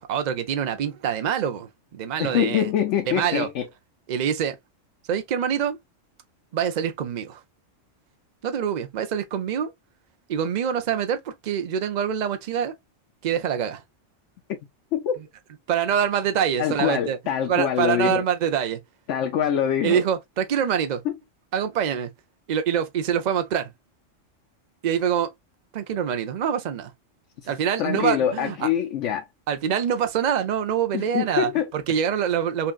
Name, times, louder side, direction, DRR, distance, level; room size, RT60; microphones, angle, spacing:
voice 1, 0.0-2.7 3.1-3.5 4.1-4.6 5.1-5.8 6.5-7.4 8.4-9.7 10.3-12.7 13.2-13.8 15.7-17.2 17.5-18.8 19.8-21.0 21.5-22.1 22.5-23.7 24.8-25.3 25.7-26.9 27.5-28.7 29.5-32.7, right 8 dB, 50° right, 0.5 m, -25 dB
voice 2, 2.2-3.7 14.9-15.1 16.6-18.2 19.1-20.0 21.0-21.1 27.4-27.5 27.8-29.2 30.9-31.7, left 9 dB, 75° left, 0.9 m, -24 dB
5.6 x 2.4 x 2.3 m
omnidirectional pair, 1.3 m